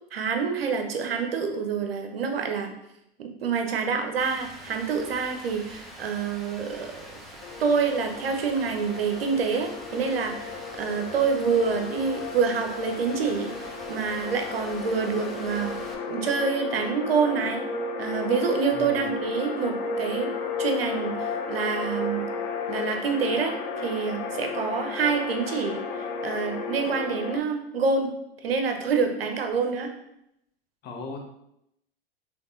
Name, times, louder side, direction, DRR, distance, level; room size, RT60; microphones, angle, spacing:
voice 1, 0.1-2.7 3.4-7.1 7.6-17.6 18.0-20.3 20.6-22.2 22.7-25.8 26.2-28.1 28.4-29.9, right 5 dB, 80° right, 5 dB, 0.8 m, -27 dB
Rain, 4.2-15.9, equal, ahead, 0.9 m, -45 dB
sound 1, 7.4-27.4, left 4 dB, 55° left, 0.7 m, -33 dB
voice 2, 18.7-19.1 30.8-31.2, left 2 dB, 35° left, 2 dB, 1.0 m, -37 dB
5.2 x 3.3 x 2.5 m, 0.79 s
hypercardioid pair, 95°, 30 cm